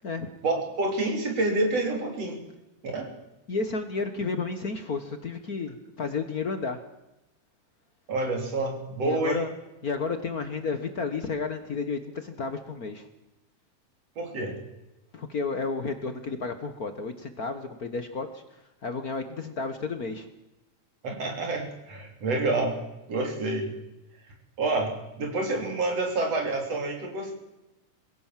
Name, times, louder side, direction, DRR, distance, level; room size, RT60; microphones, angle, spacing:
voice 1, 0.4-2.4 2.8-3.1 8.1-9.4 14.2-14.6 21.0-22.8 23.1-23.7 24.6-27.3, right 2 dB, 55° right, 2 dB, 4.3 m, -28 dB
voice 2, 3.5-6.8 9.0-9.5 9.8-13.1 15.1-20.3, left 4 dB, 50° left, 8 dB, 1.1 m, -32 dB
21.5 x 16.5 x 7.5 m, 0.96 s
omnidirectional pair, 3.5 m